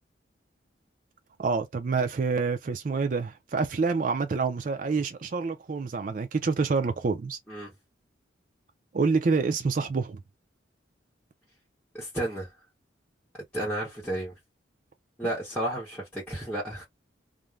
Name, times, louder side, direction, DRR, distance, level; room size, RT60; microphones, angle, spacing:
voice 1, 1.4-7.4 8.9-10.2, right 4 dB, 45° right, 0.4 m, -27 dB
voice 2, 11.9-12.5 13.5-14.3 15.2-16.8, right 1 dB, 5° left, 0.9 m, -32 dB
2.5 x 2.1 x 3.1 m
head